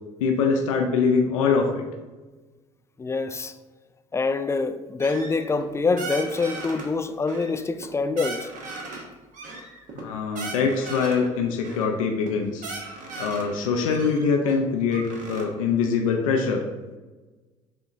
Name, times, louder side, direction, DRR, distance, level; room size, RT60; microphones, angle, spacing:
voice 1, 0.2-1.8 9.9-12.7 13.2-16.6, left 5 dB, 80° left, 0.5 m, -23 dB
voice 2, 3.0-3.5 4.1-8.5, left 4 dB, 15° left, 0.3 m, -25 dB
sound 1, 5.0-5.7 6.0-6.9 7.3-7.9 8.2-9.0 9.3-11.3 11.6-11.9 12.2-12.3 12.6-13.5 13.9-15.4, right 3 dB, 50° right, 1.1 m, -37 dB
7.1 x 2.8 x 2.6 m
hypercardioid pair, 60°, 17 cm